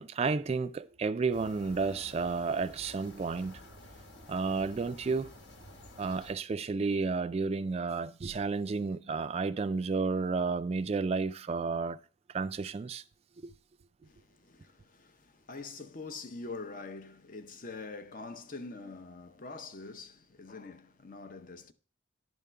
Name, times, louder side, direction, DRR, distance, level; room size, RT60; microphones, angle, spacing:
voice 1, 0.0-3.6 4.3-5.3 6.0-12.0 12.3-13.0 13.4-13.5, right 4 dB, 35° right, 0.3 m, -31 dB
sound 1, 1.3-6.3, left 1 dB, 65° left, 1.2 m, -51 dB
voice 2, 14.0-21.7, left 3 dB, 45° left, 0.7 m, -45 dB
11.0 x 3.6 x 6.7 m
head